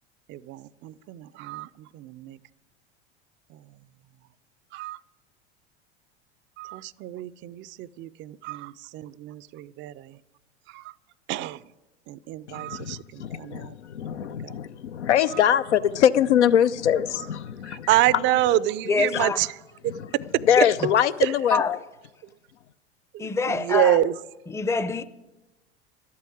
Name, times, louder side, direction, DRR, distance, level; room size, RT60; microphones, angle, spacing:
voice 1, 0.3-1.7 1.9-2.4 4.7-5.0 6.6-9.9 10.7-10.8 11.3-11.6 12.1-13.6 14.4-14.5 17.9-19.5 23.1-24.1, right 14 dB, 35° right, 0.4 m, -27 dB
voice 2, 12.5-18.6 19.1-19.3 19.8-21.8, left 9 dB, 85° left, 0.6 m, -24 dB
voice 3, 18.9-19.4 20.6-20.7 21.5-21.7 23.2-24.0 24.5-25.0, left 4 dB, 10° left, 0.6 m, -24 dB
12.0 x 8.5 x 8.5 m
hypercardioid pair, 85°, 34 cm